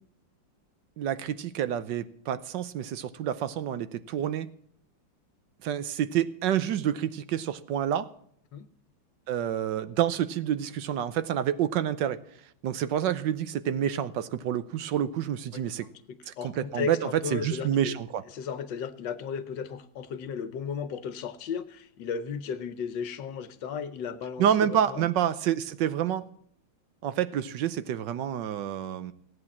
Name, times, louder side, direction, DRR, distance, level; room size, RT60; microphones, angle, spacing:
voice 1, 1.0-4.5 5.6-8.1 9.3-12.2 12.6-15.9 16.3-18.2 24.4-26.3 27.0-29.1, right 10 dB, 70° right, 14 dB, 1.4 m, -28 dB
voice 2, 16.1-18.0 18.3-25.1, left 6 dB, 70° left, 12 dB, 1.5 m, -35 dB
16.0 x 9.7 x 7.2 m, 0.65 s
omnidirectional pair, 2.1 m